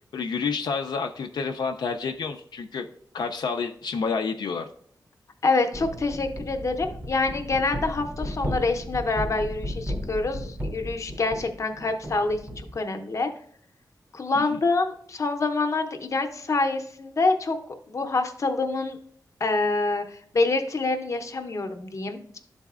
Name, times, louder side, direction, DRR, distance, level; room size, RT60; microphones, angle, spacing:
voice 1, 0.1-2.9 3.1-4.7 14.4-14.6, left 5 dB, 80° left, 4 dB, 0.4 m, -29 dB
voice 2, 5.4-13.3 14.1-17.6 17.9-19.0 19.4-22.4, left 3 dB, 45° left, 6 dB, 0.7 m, -26 dB
sound 1, 5.7-12.8, equal, 20° right, 0.6 m, -34 dB
11.5 x 4.0 x 2.4 m, 0.63 s
wide cardioid pair, 140°, 7 cm